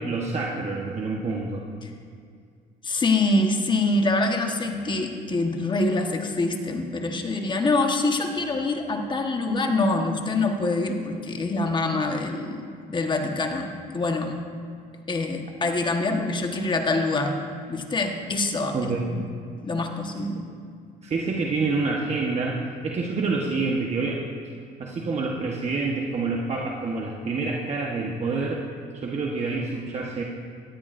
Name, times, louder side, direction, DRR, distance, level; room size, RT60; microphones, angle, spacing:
voice 1, 0.0-1.6 18.7-19.1 21.0-24.2 24.8-28.6 28.9-30.2, right 3 dB, 40° right, -1 dB, 1.2 m, -27 dB
voice 2, 2.8-14.4 15.1-17.4 17.7-18.8 19.1-19.3 19.6-20.5, left 2 dB, 25° left, 3 dB, 1.3 m, -25 dB
18.5 x 13.5 x 2.6 m, 2.2 s
cardioid pair, 110°, 17 cm